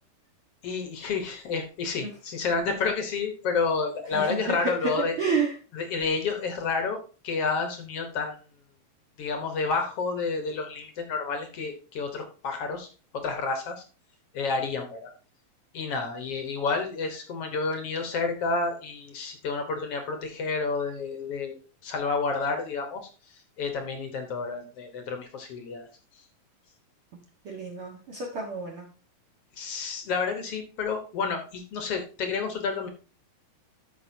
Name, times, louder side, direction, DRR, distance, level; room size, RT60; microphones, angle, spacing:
voice 1, 0.6-5.2 5.7-7.0 7.2-8.4 9.2-12.9 13.1-13.8 14.3-15.1 15.7-21.6 21.8-23.0 23.6-25.9 29.6-32.9, left 4 dB, 60° left, 5 dB, 1.7 m, -30 dB
voice 2, 4.1-5.5 27.5-28.9, right 4 dB, 50° right, -2 dB, 1.8 m, -30 dB
13.5 x 5.9 x 2.7 m, 0.35 s
omnidirectional pair, 3.9 m